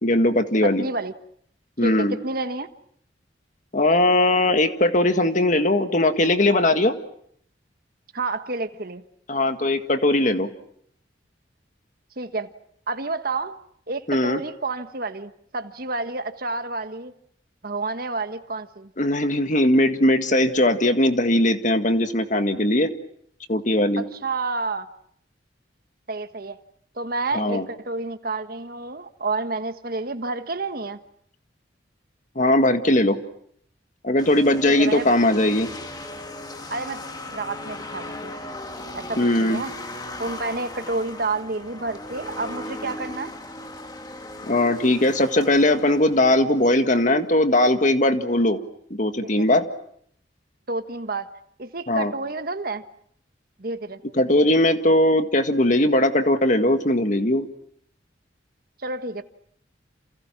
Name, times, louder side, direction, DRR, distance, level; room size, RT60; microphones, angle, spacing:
voice 1, 0.0-0.9 1.8-2.1 3.7-7.0 9.3-10.5 14.1-14.4 19.0-22.9 23.5-24.0 27.3-27.6 32.4-33.2 34.0-35.7 39.2-39.6 44.5-48.6 48.9-49.6 51.9-52.1 54.2-57.5, left 1 dB, 45° left, 1.9 m, -19 dB
voice 2, 0.6-1.1 1.8-2.7 8.1-9.0 12.2-12.5 12.9-13.6 13.9-17.1 17.6-18.9 24.0-24.9 26.1-26.6 26.9-31.0 34.6-35.1 36.7-37.0 37.3-38.3 38.9-39.7 40.2-43.3 49.4-49.5 50.7-51.3 51.6-52.8 53.6-54.0 58.8-59.2, right 3 dB, 50° right, 1.4 m, -29 dB
sound 1, 34.2-47.2, left 1 dB, 20° left, 1.8 m, -37 dB
28.5 x 28.5 x 6.1 m
head